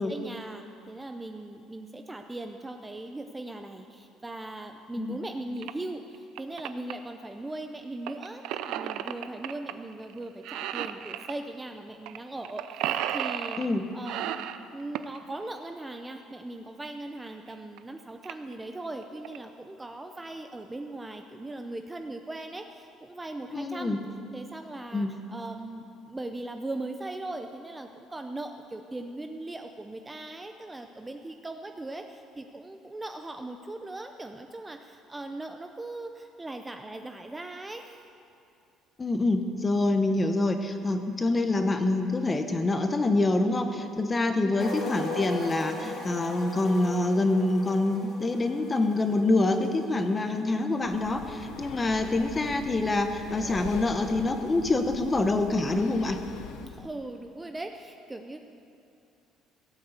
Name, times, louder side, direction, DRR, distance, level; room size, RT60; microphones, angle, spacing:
voice 1, 0.0-13.6 13.9-14.4 14.7-24.0 24.3-38.0 44.4-44.8 56.7-58.4, right 2 dB, 10° right, 5 dB, 0.6 m, -39 dB
sound 1, 5.6-5.7 6.1-6.9 8.1-9.7 10.0-10.2 10.4-11.3 12.1-12.2 12.4-13.7 14.0-15.2 16.8-16.9 17.5-17.6 17.8-17.9 18.2-18.5 19.0-19.4, right 11 dB, 75° right, 0.6 m, -33 dB
voice 2, 23.5-24.0 24.9-25.2 39.0-56.2, left 2 dB, 15° left, 7 dB, 0.9 m, -26 dB
sound 2, 44.6-50.6 50.9-51.1, left 3 dB, 40° left, 2.5 m, -39 dB
Breathing, 50.8-56.9, left 8 dB, 65° left, 0.7 m, -42 dB
16.0 x 8.5 x 8.1 m, 2.6 s
cardioid pair, 150°, 0 cm